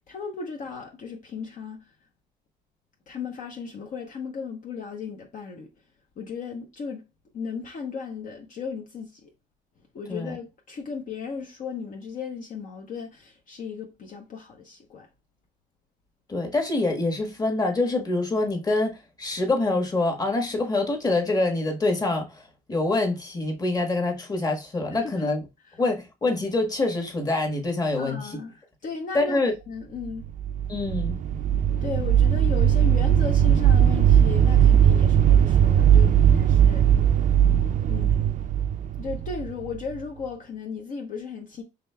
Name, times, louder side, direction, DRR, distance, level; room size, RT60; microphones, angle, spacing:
voice 1, 0.1-1.9 3.1-5.7 6.2-7.0 7.3-9.3 9.9-15.1 24.9-25.3 28.0-30.3 31.8-36.9 37.9-38.4 39.0-41.6, left 5 dB, 50° left, 0.9 m, -36 dB
voice 2, 16.3-25.4 25.8-28.4 29.1-29.5 30.7-31.2, left 2 dB, 20° left, 1.4 m, -25 dB
sound 1, 30.2-40.0, right 9 dB, 50° right, 0.4 m, -19 dB
5.1 x 3.4 x 2.2 m
cardioid pair, 110°, 17 cm